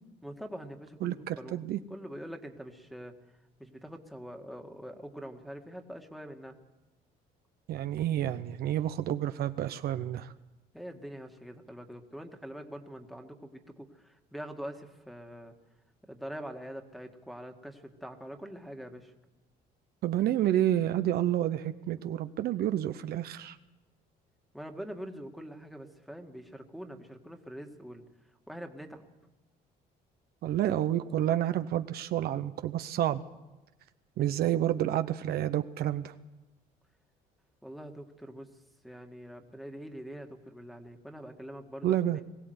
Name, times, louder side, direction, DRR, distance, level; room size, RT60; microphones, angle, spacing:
voice 1, 0.2-3.1 3.6-6.6 10.7-15.5 16.1-19.1 22.0-22.1 24.5-28.0 28.5-29.1 37.6-38.5 38.8-42.2, equal, ahead, 3 dB, 1.9 m, -44 dB
voice 2, 1.0-1.8 7.7-10.3 20.0-23.6 30.4-33.2 34.2-36.1 41.8-42.2, right 12 dB, 65° right, 10 dB, 0.8 m, -29 dB
21.0 x 16.5 x 8.0 m, 1.0 s
cardioid pair, 110°, 17 cm